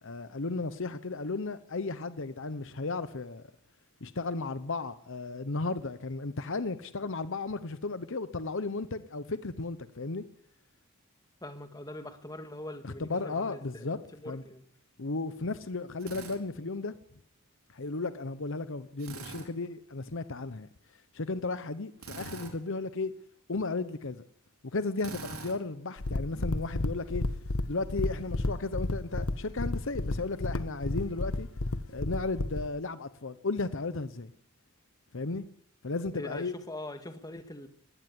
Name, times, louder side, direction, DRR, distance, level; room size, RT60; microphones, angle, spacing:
voice 1, 0.0-3.5 4.0-10.2 12.8-14.0 14.3-14.4 15.0-16.9 17.7-20.7 21.1-23.1 23.5-24.2 24.7-27.2 27.7-31.5 31.9-34.3 35.1-35.5 35.8-36.5, left 3 dB, 65° left, 1.0 m, -34 dB
voice 2, 11.4-14.6 36.1-37.7, left 1 dB, 20° left, 2.0 m, -42 dB
Drill, 16.0-16.4 19.0-19.5 22.0-22.6 25.0-25.6, right 3 dB, 80° right, 4.5 m, -43 dB
sound 1, 26.0-32.7, left 2 dB, 80° left, 1.3 m, -32 dB
20.5 x 16.0 x 9.9 m
head